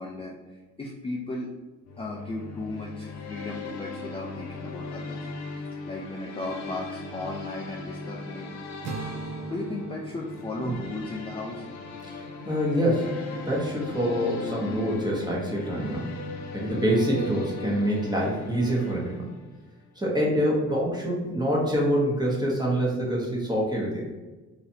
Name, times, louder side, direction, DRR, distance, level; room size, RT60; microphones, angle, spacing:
voice 1, 0.0-1.5 2.0-8.6 9.5-11.6, left 2 dB, 20° left, -2 dB, 0.4 m, -36 dB
sound 1, 1.9-19.6, left 3 dB, 65° left, 0.6 m, -38 dB
sound 2, 8.8-12.9, right 4 dB, 60° right, 0.6 m, -40 dB
voice 2, 12.1-13.2 13.5-16.1 16.5-19.3 20.0-24.1, equal, 15° right, -4 dB, 1.1 m, -26 dB
3.9 x 2.8 x 2.7 m, 1.2 s
cardioid pair, 90°, 30 cm